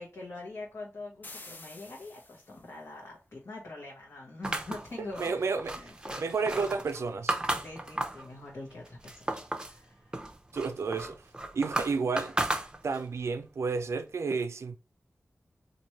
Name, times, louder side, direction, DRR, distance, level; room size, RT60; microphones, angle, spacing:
voice 1, 0.0-6.2 7.5-10.1, left 2 dB, 70° left, 1.0 m, -44 dB
sound 1, 1.2-2.8, left 2 dB, 40° left, 0.6 m, -49 dB
sound 2, 4.4-8.3 8.7-9.8 10.1-13.1, right 1 dB, 20° right, 0.6 m, -34 dB
voice 2, 5.0-5.9 6.2-7.3 10.5-11.2 11.5-12.3 12.8-14.8, right 4 dB, 90° right, 0.3 m, -31 dB
3.1 x 2.5 x 4.2 m
wide cardioid pair, 85°, 5 cm